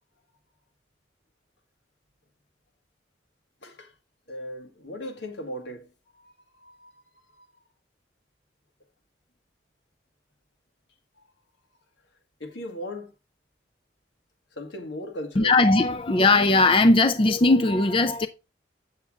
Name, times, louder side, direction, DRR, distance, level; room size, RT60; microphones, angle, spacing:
voice 1, 3.6-3.9 4.3-6.9 7.3-7.4 12.4-13.1 14.5-15.6, equal, 85° left, 1.7 m, -38 dB
voice 2, 15.4-18.3, left 2 dB, 30° left, 0.4 m, -19 dB
8.6 x 7.1 x 3.6 m
head